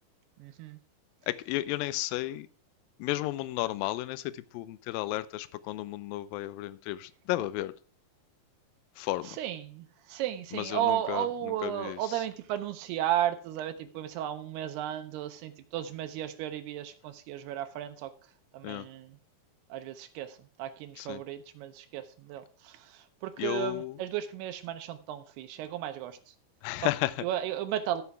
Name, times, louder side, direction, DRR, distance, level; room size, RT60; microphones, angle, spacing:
voice 1, 0.4-0.8 9.2-18.1 18.5-19.2 19.7-26.2 26.8-26.9 27.2-28.0, right 12 dB, 85° right, 9 dB, 2.7 m, -34 dB
voice 2, 1.3-2.5 3.0-7.7 9.0-9.4 10.5-11.3 11.6-12.0 18.6-18.9 21.0-21.2 23.4-24.0 26.6-27.1, left 17 dB, 85° left, 15 dB, 2.1 m, -33 dB
14.0 x 5.8 x 4.6 m, 0.42 s
omnidirectional pair, 4.6 m